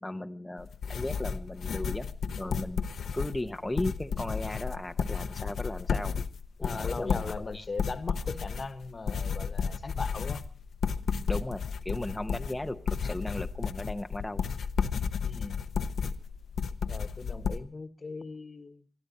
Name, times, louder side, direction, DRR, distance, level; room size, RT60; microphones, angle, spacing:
voice 1, 0.0-2.1 2.4-2.9 3.1-6.2 6.6-7.2 7.5-7.6 11.3-14.4, left 1 dB, 15° left, 7 dB, 0.9 m, -36 dB
sound 1, 0.6-17.6, left 6 dB, 80° left, 0.9 m, -33 dB
voice 2, 6.6-10.4 15.2-15.6 16.9-18.8, left 3 dB, 40° left, 12 dB, 1.4 m, -39 dB
23.5 x 13.0 x 4.2 m, 0.39 s
cardioid pair, 85°, 0 cm